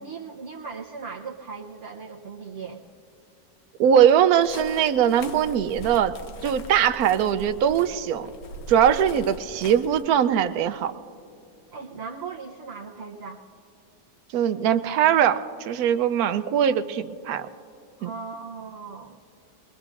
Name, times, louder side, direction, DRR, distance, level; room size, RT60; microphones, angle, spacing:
voice 1, 0.0-2.8 11.7-13.4 18.0-19.2, right 5 dB, 50° right, -3 dB, 1.0 m, -38 dB
voice 2, 3.8-6.1 6.4-8.3 8.7-10.9 14.3-17.5 18.0-18.1, right 9 dB, 85° right, 11 dB, 1.1 m, -21 dB
sound 1, 4.4-10.0, equal, 85° left, 1.4 m, -41 dB
23.5 x 21.5 x 2.5 m, 2.6 s
omnidirectional pair, 1.5 m